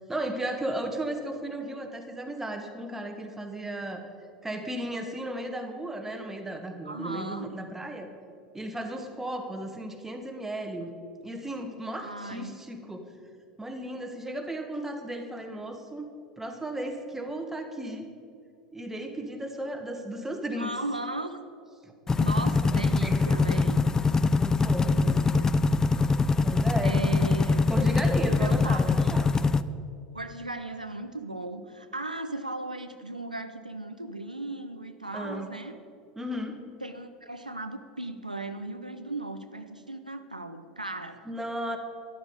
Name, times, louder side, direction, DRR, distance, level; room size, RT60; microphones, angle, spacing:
voice 1, 0.1-4.0 4.4-8.1 8.5-10.9 11.2-13.0 13.6-16.1 16.4-18.1 18.7-20.7 22.7-23.7 24.3-24.9 26.4-27.1 27.7-29.3 35.1-35.5 36.2-36.6 41.2-41.8, right 1 dB, 10° right, 4 dB, 1.5 m, -35 dB
voice 2, 6.8-7.5 12.0-12.6 20.6-21.4 22.2-23.8 24.9-25.5 26.8-27.7 28.2-29.3 30.1-35.8 36.8-41.2, right 2 dB, 90° right, 8 dB, 0.6 m, -37 dB
sound 1, 22.1-29.6, left 4 dB, 15° left, 0.4 m, -23 dB
12.5 x 11.0 x 5.0 m, 2.4 s
figure-of-eight pair, 80°, 4 cm